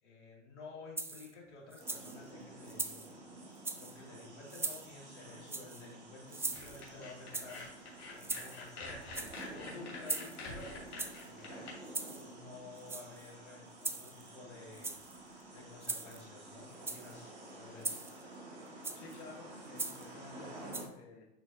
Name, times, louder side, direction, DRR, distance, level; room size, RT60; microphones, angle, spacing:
voice 1, 0.0-3.2 3.8-7.7 8.1-10.8 11.2-11.7 12.1-14.9 15.5-18.0, left 3 dB, 85° left, -3 dB, 2.7 m, -52 dB
sound 1, 1.0-1.3 1.7-2.2 2.7-3.1 3.6-4.0 4.5-4.9 5.5-5.9 6.3-6.9 7.3-7.7 8.2-8.7 9.0-9.5 10.1-10.5 11.0-11.3 11.9-12.3 12.8-13.3 13.8-14.3 14.7-15.2 15.8-16.2 16.7-17.1 17.8-18.2 18.8-19.2 19.8-20.1 20.7-20.9, right 3 dB, 5° right, 0.5 m, -40 dB
sound 2, 1.8-20.9, right 2 dB, 80° right, 2.6 m, -51 dB
sound 3, 6.5-11.7, left 3 dB, 65° left, 2.7 m, -47 dB
voice 2, 18.9-21.3, left 3 dB, 45° left, -1 dB, 2.0 m, -52 dB
11.0 x 4.3 x 2.8 m, 0.88 s
hypercardioid pair, 95°, 34 cm